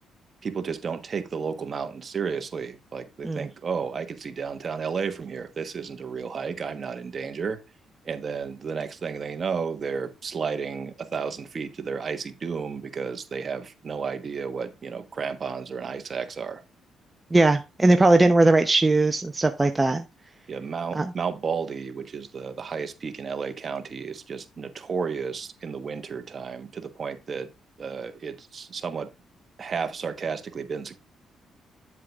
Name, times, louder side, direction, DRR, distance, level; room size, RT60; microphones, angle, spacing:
voice 1, 0.4-7.6 8.0-16.6 20.5-27.5 27.8-29.1 29.6-31.0, right 5 dB, 45° right, 1.2 m, -32 dB
voice 2, 17.3-20.0 20.9-21.1, right 2 dB, 20° right, 0.8 m, -19 dB
9.5 x 7.5 x 2.4 m
cardioid pair, 90°, 0 cm